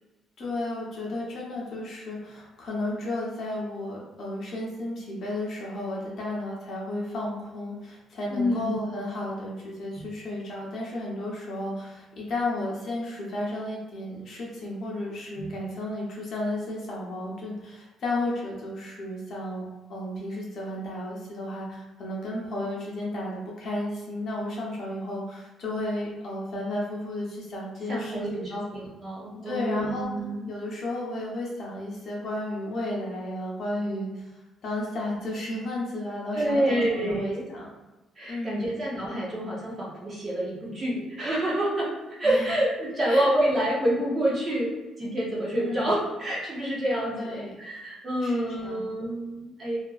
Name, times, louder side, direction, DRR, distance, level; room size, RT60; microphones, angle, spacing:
voice 1, 0.4-19.6 19.9-28.6 29.4-34.3 34.6-37.7 38.3-38.7 42.2-42.5 43.1-43.3 45.6-45.9 47.1-47.5 48.2-48.8, left 1 dB, 45° left, -4 dB, 0.8 m, -33 dB
voice 2, 8.3-8.7 15.4-15.5 27.9-30.5 36.3-37.4 38.2-44.7 45.0-49.8, right 1 dB, 25° right, -5 dB, 0.6 m, -27 dB
2.8 x 2.5 x 2.3 m, 1.1 s
cardioid pair, 170°, 0 cm